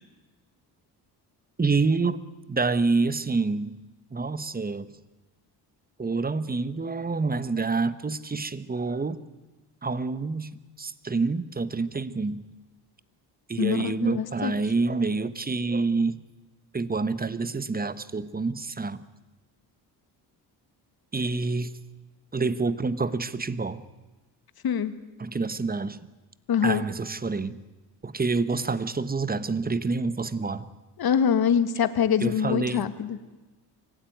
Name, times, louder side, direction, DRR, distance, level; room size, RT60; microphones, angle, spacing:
voice 1, 1.6-2.2 2.5-3.7 4.1-4.9 6.0-9.2 9.8-10.5 10.8-12.4 13.5-16.2 16.7-19.0 21.1-21.8 22.3-23.8 25.2-26.0 26.6-27.6 28.0-30.7 32.2-32.9, right 4 dB, 20° right, 1.2 m, -27 dB
voice 2, 13.6-14.5 24.6-24.9 26.5-26.9 31.0-33.2, left 8 dB, 60° left, 1.7 m, -24 dB
25.0 x 16.0 x 9.4 m
cardioid pair, 85°, 42 cm